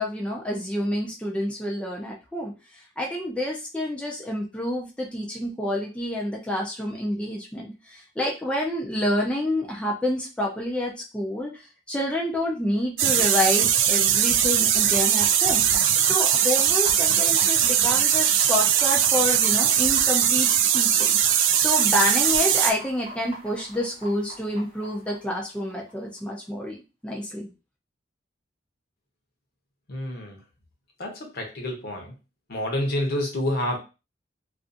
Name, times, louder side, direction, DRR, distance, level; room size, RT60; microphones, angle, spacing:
voice 1, 0.0-15.7 16.0-21.2 21.6-27.5, left 1 dB, 5° left, -2 dB, 0.4 m, -28 dB
sound 1, 13.0-22.7, right 9 dB, 80° right, 0.3 m, -20 dB
sound 2, 14.9-26.3, right 1 dB, 30° right, 0.8 m, -43 dB
voice 2, 29.9-30.4 31.0-32.1 32.5-33.8, left 1 dB, 60° left, 2 dB, 0.8 m, -28 dB
2.4 x 2.4 x 2.5 m, 0.30 s
head